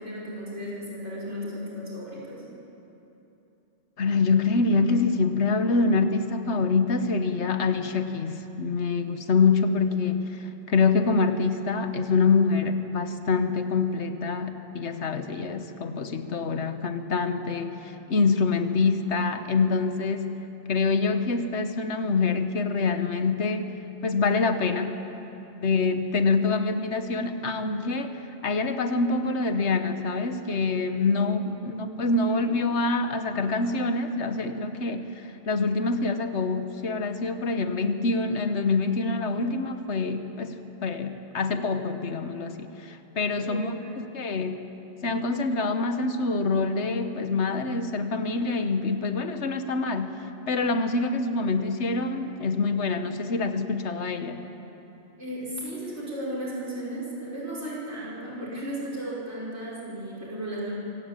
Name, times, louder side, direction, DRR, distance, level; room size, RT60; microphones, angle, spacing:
voice 1, 0.0-2.4 31.6-32.6 43.4-44.1 55.2-60.7, right 1 dB, 85° right, -5 dB, 5.7 m, -35 dB
voice 2, 4.0-20.4 20.7-23.7 24.0-25.0 25.6-44.6 45.0-50.2 50.5-54.4, left 4 dB, 85° left, 8 dB, 1.4 m, -25 dB
24.5 x 16.0 x 8.9 m, 3.0 s
omnidirectional pair, 1.1 m